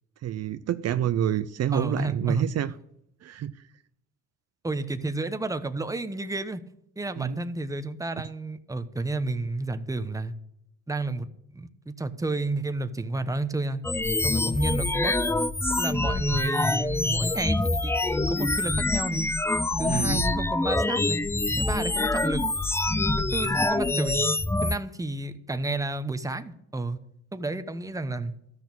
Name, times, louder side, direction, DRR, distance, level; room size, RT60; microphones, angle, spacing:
voice 1, 0.2-2.7 3.2-3.5 7.2-7.4 19.7-20.2, right 10 dB, 55° right, 12 dB, 0.6 m, -27 dB
voice 2, 1.7-2.5 4.6-6.6 7.0-10.3 10.9-11.3 11.5-13.8 14.2-15.1 15.8-19.3 19.8-21.2 21.6-22.4 23.3-24.2 24.6-27.0 27.3-28.3, right 2 dB, 10° right, 10 dB, 1.0 m, -31 dB
sound 1, 13.8-24.8, left 2 dB, 10° left, 0.4 m, -25 dB
13.0 x 6.3 x 8.7 m, 0.76 s
cardioid pair, 90°, 30 cm